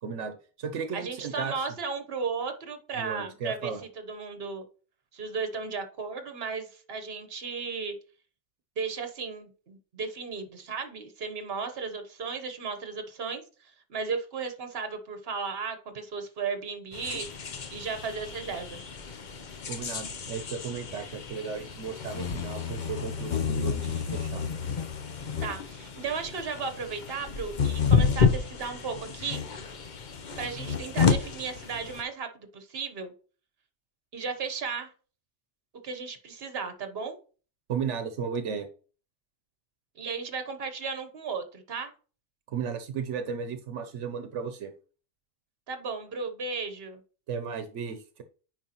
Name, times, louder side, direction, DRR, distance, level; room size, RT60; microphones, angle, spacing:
voice 1, 0.0-1.5 3.0-3.8 19.7-24.4 37.7-38.7 42.5-44.7 47.3-48.2, right 6 dB, 85° right, 8 dB, 1.1 m, -35 dB
voice 2, 0.9-3.7 4.1-4.6 5.1-7.9 8.8-17.4 17.7-18.8 25.4-29.4 30.4-33.1 34.1-34.9 35.8-37.2 40.0-41.9 45.7-47.0, right 5 dB, 60° right, 7 dB, 1.3 m, -35 dB
sound 1, 16.9-32.0, left 6 dB, 45° left, 0.8 m, -30 dB
9.1 x 4.9 x 2.9 m, 0.39 s
omnidirectional pair, 1.2 m